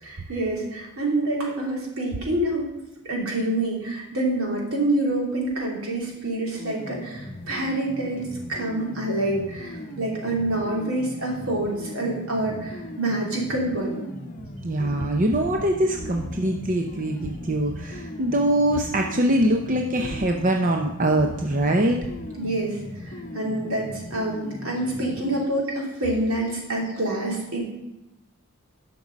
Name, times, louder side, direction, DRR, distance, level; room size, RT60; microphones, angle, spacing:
voice 1, 0.0-2.7 3.0-14.0 22.4-27.6, right 1 dB, 75° right, -2 dB, 3.0 m, -27 dB
sound 1, 6.6-25.4, left 1 dB, 35° left, 0.8 m, -38 dB
voice 2, 14.6-22.0, right 1 dB, 40° right, 2 dB, 0.7 m, -23 dB
11.5 x 6.1 x 5.2 m, 0.96 s
head